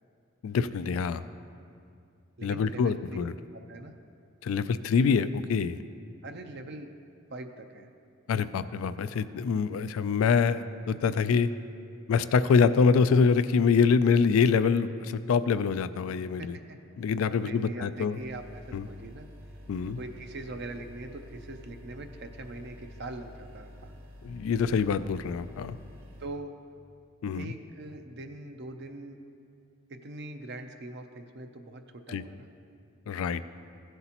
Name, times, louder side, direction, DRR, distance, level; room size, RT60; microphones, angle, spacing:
voice 1, 0.4-1.2 2.4-3.3 4.4-5.8 8.3-11.5 12.1-16.6 17.0-18.2 18.7-18.8 19.7-20.0 24.2-25.8 27.2-27.5 32.1-32.2 33.1-33.4, left 5 dB, 85° left, 14 dB, 0.3 m, -25 dB
voice 2, 2.4-3.2 3.5-4.0 6.2-6.9 7.3-7.9 16.4-16.8 17.4-19.3 20.0-23.9 26.2-26.5 27.3-29.2 29.9-32.5, right 2 dB, 55° right, 6 dB, 0.6 m, -42 dB
sound 1, 18.2-26.3, equal, 85° right, 1.3 m, -48 dB
15.5 x 7.9 x 2.9 m, 2.4 s
head